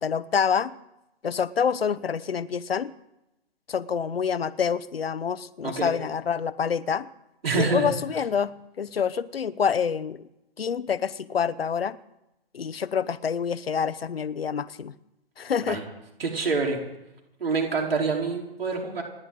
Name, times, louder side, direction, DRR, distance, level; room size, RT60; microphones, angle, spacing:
voice 1, 0.0-0.7 1.2-2.9 3.7-7.1 7.5-10.3 10.6-12.0 12.5-14.9 15.4-15.8, left 7 dB, 70° left, 17 dB, 0.8 m, -27 dB
voice 2, 7.4-8.0 15.7-15.8 16.2-16.8 17.4-19.0, right 4 dB, 70° right, 1 dB, 4.1 m, -26 dB
29.0 x 10.5 x 3.8 m, 0.89 s
figure-of-eight pair, 120°, 31 cm